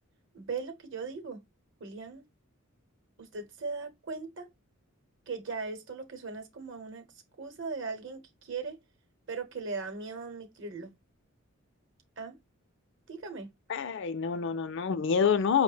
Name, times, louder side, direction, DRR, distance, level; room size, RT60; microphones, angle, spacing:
voice 1, 0.3-1.4 1.8-2.2 3.2-4.5 5.3-7.1 7.4-8.8 9.3-10.9 12.2-12.4 13.1-13.5, right 4 dB, 60° right, 0.8 m, -38 dB
voice 2, 13.7-15.6, left 6 dB, 55° left, 0.4 m, -27 dB
5.2 x 2.1 x 3.2 m
head